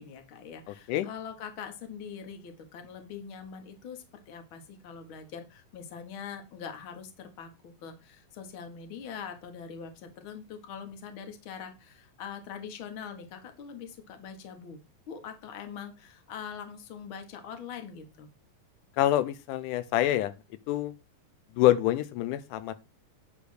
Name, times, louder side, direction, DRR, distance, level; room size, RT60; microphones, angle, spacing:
voice 1, 0.0-14.8 15.1-18.3, left 7 dB, 50° left, 1.8 m, -43 dB
voice 2, 19.0-20.3 20.7-20.9 21.6-22.7, left 13 dB, 85° left, 2.1 m, -26 dB
9.9 x 3.5 x 6.4 m
omnidirectional pair, 3.6 m